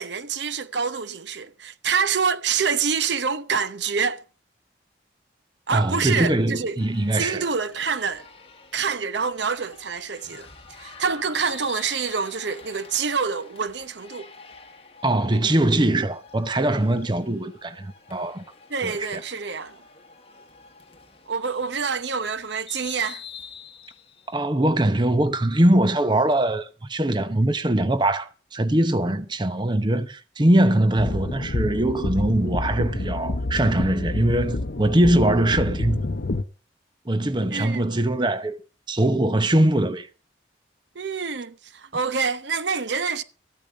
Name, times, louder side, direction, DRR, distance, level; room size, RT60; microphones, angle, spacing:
voice 1, 0.0-4.2 5.7-6.8 7.1-8.2 8.7-10.5 10.8-14.3 18.7-19.8 21.3-23.2 37.5-37.9 40.9-43.2, right 5 dB, 70° right, 0.8 m, -26 dB
voice 2, 5.7-7.5 15.0-18.4 18.8-19.2 24.3-36.1 37.1-38.6 38.9-40.1, right 1 dB, 25° right, 0.8 m, -22 dB
sound 1, 6.8-24.4, left 5 dB, 30° left, 1.3 m, -46 dB
sound 2, 31.0-36.4, left 2 dB, 55° left, 0.7 m, -28 dB
14.5 x 8.9 x 6.4 m
head